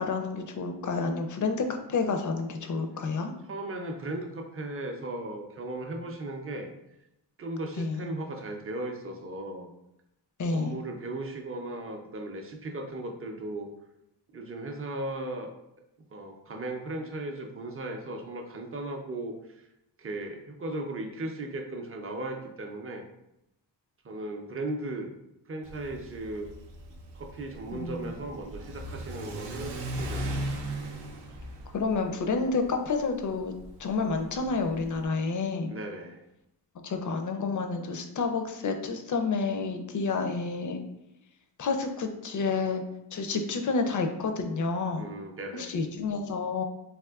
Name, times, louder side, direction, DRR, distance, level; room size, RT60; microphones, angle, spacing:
voice 1, 0.0-3.3 7.8-8.1 10.4-10.8 27.7-28.1 31.7-33.5 33.8-35.7 36.8-40.8 41.6-42.8 43.1-45.0 45.5-46.6, left 4 dB, 45° left, 5 dB, 0.4 m, -29 dB
voice 2, 3.4-6.7 7.4-9.7 10.5-13.7 14.3-15.5 16.1-19.6 20.0-23.0 24.0-25.1 25.5-26.5 26.9-30.5 35.7-36.2 43.3-43.4 45.0-45.7, right 2 dB, 30° right, 4 dB, 0.4 m, -37 dB
Car / Accelerating revving vroom, 25.6-35.0, right 1 dB, 75° right, 0.6 m, -38 dB
3.5 x 2.5 x 2.3 m, 0.85 s
wide cardioid pair, 80°, 43 cm